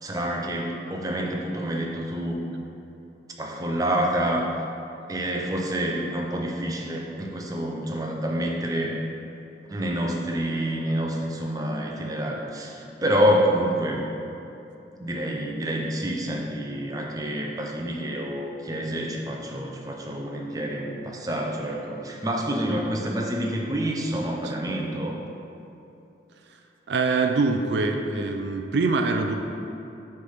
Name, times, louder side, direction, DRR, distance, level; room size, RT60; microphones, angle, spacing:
voice 1, 0.0-2.4 3.4-4.4 5.1-9.0 9.7-14.0 15.0-25.2, right 1 dB, 20° right, 0 dB, 0.5 m, -27 dB
voice 2, 26.9-29.4, right 3 dB, 70° right, 5 dB, 0.4 m, -24 dB
6.6 x 3.4 x 5.5 m, 2.8 s
head